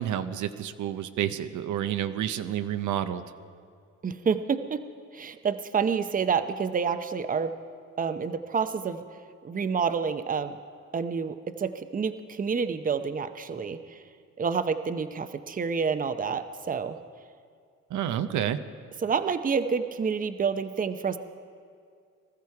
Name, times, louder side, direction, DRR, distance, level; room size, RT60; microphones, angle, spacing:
voice 1, 0.0-3.2 17.9-18.6, right 10 dB, 75° right, 9 dB, 0.7 m, -29 dB
voice 2, 4.0-4.8 5.1-7.5 8.0-9.0 9.4-10.6 10.9-14.0 14.4-17.0 19.0-21.2, right 6 dB, 30° right, 10 dB, 0.7 m, -28 dB
20.0 x 13.5 x 4.8 m, 2.2 s
cardioid pair, 90°, 30 cm